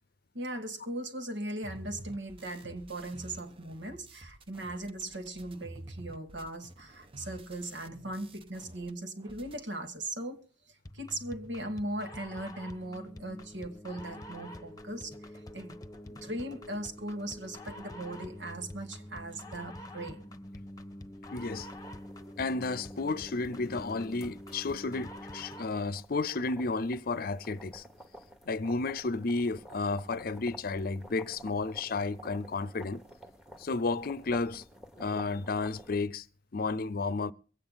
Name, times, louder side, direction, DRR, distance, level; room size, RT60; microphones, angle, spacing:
voice 1, 0.3-15.8 16.1-20.2, right 1 dB, 80° right, 1.9 m, -39 dB
sound 1, 1.6-8.9 9.2-9.6, right 1 dB, 30° right, 0.8 m, -49 dB
sound 2, 10.8-25.8, left 1 dB, 20° left, 0.9 m, -46 dB
voice 2, 21.3-21.7 22.4-27.8 28.5-33.0 33.6-34.6 35.0-36.2 36.5-37.3, left 3 dB, 55° left, 0.6 m, -32 dB
sound 3, 21.4-36.1, right 1 dB, 5° right, 1.3 m, -52 dB
23.5 x 8.8 x 4.0 m
head